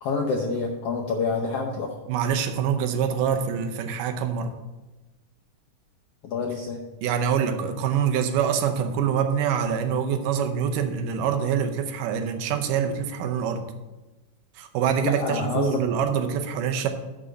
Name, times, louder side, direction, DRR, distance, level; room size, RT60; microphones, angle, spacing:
voice 1, 0.0-1.9 6.2-6.8 15.0-15.8, left 4 dB, 75° left, 1 dB, 1.4 m, -27 dB
voice 2, 2.1-4.5 7.0-13.7 14.6-16.9, right 7 dB, 80° right, 6 dB, 2.3 m, -25 dB
6.8 x 6.1 x 7.6 m, 1.1 s
omnidirectional pair, 3.7 m